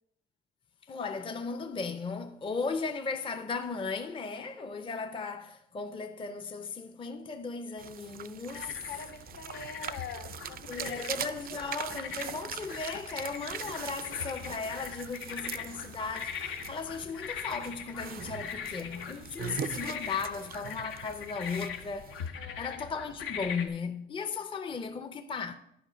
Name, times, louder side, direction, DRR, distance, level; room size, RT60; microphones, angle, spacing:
voice 1, 0.9-8.8 10.6-25.5, left 5 dB, 25° left, 0.5 m, -36 dB
sound 1, 7.8-22.3, right 9 dB, 50° right, 0.4 m, -42 dB
sound 2, 8.5-23.7, left 7 dB, 90° left, 0.8 m, -42 dB
voice 2, 8.5-11.1 22.3-22.8, left 6 dB, 55° left, 0.8 m, -44 dB
10.0 x 4.9 x 5.0 m
cardioid pair, 90°, 20 cm